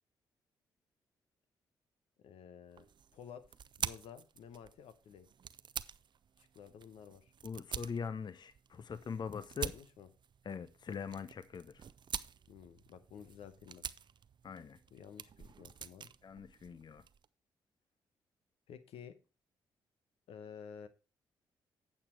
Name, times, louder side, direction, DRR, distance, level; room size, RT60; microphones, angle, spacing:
voice 1, 2.2-2.9 3.1-3.5 3.8-5.3 6.4-7.3 9.6-10.1 12.5-13.8 14.9-16.1 18.7-19.2 20.3-20.9, left 7 dB, 75° left, 0.9 m, -52 dB
sound 1, 2.7-17.3, right 7 dB, 50° right, 0.5 m, -47 dB
voice 2, 7.4-9.7 10.5-11.8 14.4-14.8 16.2-17.0, left 6 dB, 45° left, 0.7 m, -42 dB
8.7 x 6.6 x 4.4 m
hypercardioid pair, 45°, 10 cm